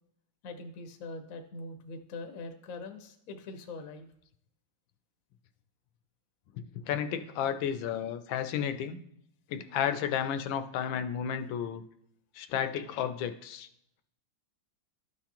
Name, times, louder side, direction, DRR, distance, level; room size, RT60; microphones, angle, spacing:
voice 1, 0.4-4.1, left 3 dB, 60° left, 5 dB, 0.9 m, -42 dB
voice 2, 6.9-9.0 9.5-11.8 12.3-13.7, left 9 dB, 75° left, 10 dB, 1.3 m, -32 dB
12.0 x 4.7 x 2.9 m, 0.75 s
omnidirectional pair, 2.2 m